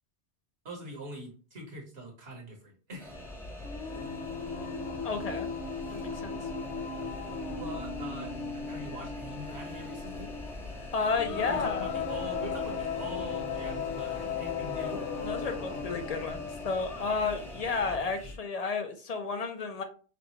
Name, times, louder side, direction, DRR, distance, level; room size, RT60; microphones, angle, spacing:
voice 1, 0.7-3.2 7.6-8.3 8.6-10.3 11.3-15.0, right 1 dB, 60° right, -1 dB, 1.7 m, -43 dB
sound 1, 3.0-18.0, left 1 dB, 5° left, 0.4 m, -46 dB
sound 2, 3.1-18.4, left 2 dB, 60° left, 1.8 m, -47 dB
Singing, 3.6-16.8, left 5 dB, 80° left, 0.9 m, -36 dB
voice 2, 5.0-5.5 5.9-6.4 10.9-11.9 15.2-19.8, left 4 dB, 40° left, 5 dB, 0.7 m, -32 dB
6.1 x 2.4 x 3.0 m, 0.37 s
omnidirectional pair, 1.2 m